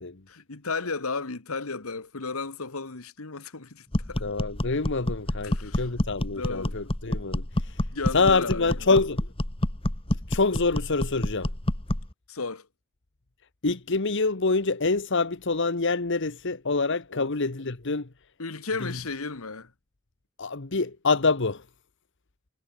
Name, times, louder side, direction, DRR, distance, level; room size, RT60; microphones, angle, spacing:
voice 1, 0.3-4.2 5.4-5.9 6.3-6.7 7.9-8.8 12.3-12.7 17.1-17.3 18.4-19.7, left 4 dB, 85° left, 1.7 m, -34 dB
sound 1, 3.9-12.1, left 1 dB, 25° left, 1.6 m, -29 dB
voice 2, 4.2-7.8 8.1-9.3 10.3-11.5 13.6-18.1 18.8-19.0 20.4-21.6, left 3 dB, 60° left, 1.3 m, -26 dB
head